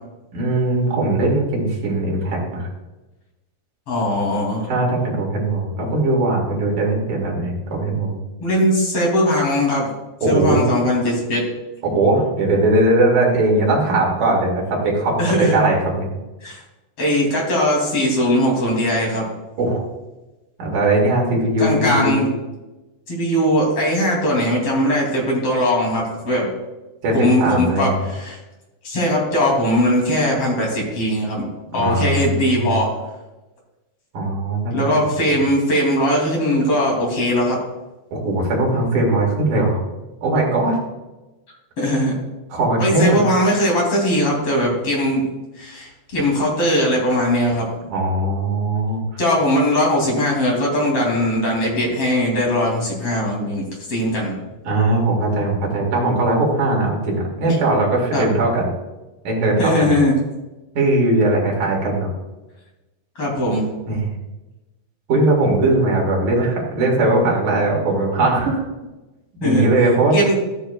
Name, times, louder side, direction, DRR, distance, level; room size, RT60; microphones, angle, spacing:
voice 1, 0.3-2.7 4.7-8.2 10.2-10.6 11.8-16.1 19.6-19.9 20.6-22.1 27.0-28.0 31.7-32.7 34.1-34.9 38.1-39.8 40.2-40.8 42.5-43.2 47.9-49.0 54.6-58.7 59.2-59.9 60.7-62.1 63.9-64.1 65.1-68.6 69.4-70.1, right 2 dB, 50° right, -2 dB, 3.4 m, -19 dB
voice 2, 3.9-4.7 8.4-9.9 10.3-11.4 15.2-15.6 16.4-16.6 17.0-19.3 21.6-22.3 23.1-26.5 27.1-28.4 28.8-31.5 31.7-32.9 34.7-37.6 41.8-42.2 42.8-45.2 45.6-47.7 49.2-54.4 57.5-57.6 58.1-58.3 59.6-60.2 63.1-63.7 69.4-69.6 70.1-70.3, equal, 35° left, -2 dB, 3.1 m, -19 dB
13.5 x 9.9 x 2.3 m, 1.1 s
omnidirectional pair, 4.9 m